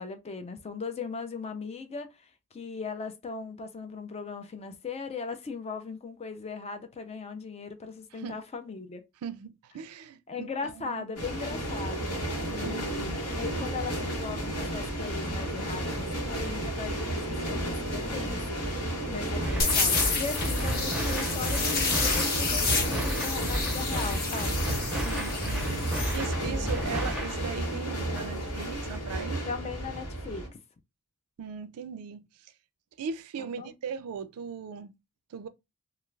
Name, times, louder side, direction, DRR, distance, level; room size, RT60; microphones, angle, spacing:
voice 1, 0.0-9.0 10.3-12.2 12.5-17.2 17.5-24.6 26.4-27.2 29.5-30.5 33.4-33.7, left 5 dB, 30° left, 0.4 m, -38 dB
voice 2, 9.2-11.0 12.4-13.2 24.9-25.8 26.1-29.4 31.4-32.2 33.0-34.9 35.3-35.5, right 6 dB, 75° right, 0.4 m, -38 dB
sound 1, 11.2-30.5, right 1 dB, 85° left, 1.2 m, -33 dB
sound 2, 19.4-27.4, right 1 dB, 5° right, 0.6 m, -33 dB
sound 3, 19.6-26.2, left 4 dB, 45° left, 0.7 m, -30 dB
2.3 x 2.3 x 3.1 m
head